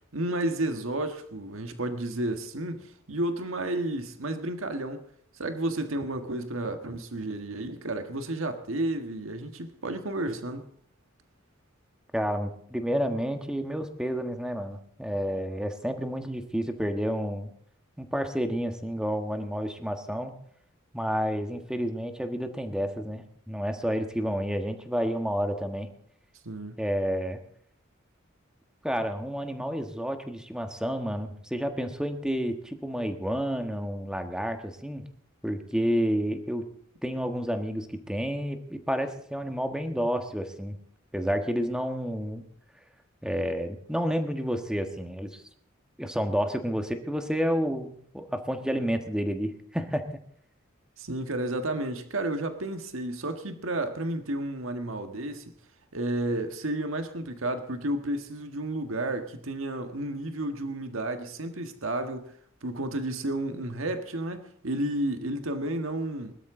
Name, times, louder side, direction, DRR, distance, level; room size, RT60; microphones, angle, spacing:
voice 1, 0.1-5.1 5.4-10.7 26.4-26.8 51.0-55.5 55.9-62.3 62.6-66.3, right 1 dB, 85° right, 1.6 m, -32 dB
voice 2, 12.1-17.5 18.0-20.3 20.9-25.9 26.8-27.4 28.8-35.0 35.4-36.6 37.0-40.8 41.1-42.4 43.2-45.4 46.0-50.0, equal, 5° right, 1.4 m, -30 dB
21.5 x 12.5 x 3.8 m
head